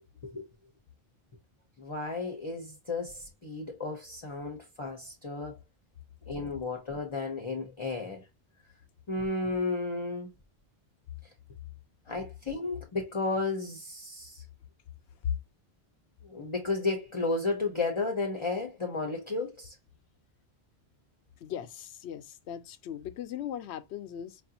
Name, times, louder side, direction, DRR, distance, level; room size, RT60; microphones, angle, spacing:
voice 1, 1.8-5.6 6.3-8.3 9.1-10.3 12.1-14.4 16.2-19.7, left 3 dB, 30° left, 0.7 m, -33 dB
voice 2, 21.4-24.4, left 9 dB, 85° left, 0.8 m, -37 dB
4.7 x 2.5 x 2.8 m
omnidirectional pair, 1.1 m